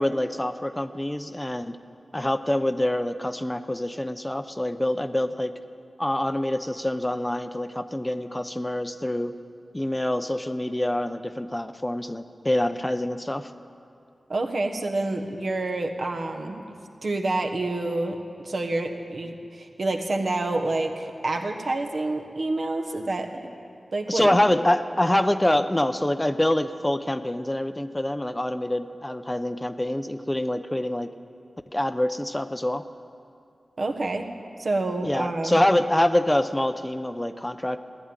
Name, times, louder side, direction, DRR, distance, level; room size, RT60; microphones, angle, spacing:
voice 1, 0.0-1.8 2.1-5.6 6.0-9.3 9.7-13.5 24.1-31.1 31.7-32.8 35.0-37.8, left 1 dB, 15° left, 10 dB, 0.6 m, -25 dB
voice 2, 14.3-16.6 17.0-18.2 18.4-23.5 23.9-24.4 33.8-34.3 34.6-35.6, right 2 dB, 65° right, 3 dB, 1.4 m, -28 dB
15.0 x 10.5 x 9.0 m, 2.5 s
wide cardioid pair, 60°, 0 cm